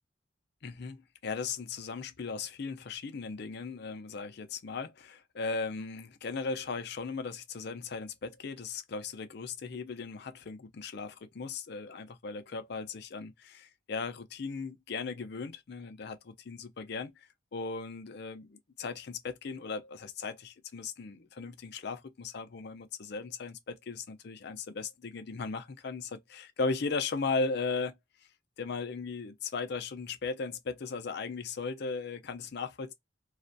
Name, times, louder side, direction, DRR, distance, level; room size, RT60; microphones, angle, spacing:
voice 1, 0.6-28.0 28.6-32.9, left 4 dB, 60° left, 0.5 m, -37 dB
2.4 x 2.2 x 2.5 m
head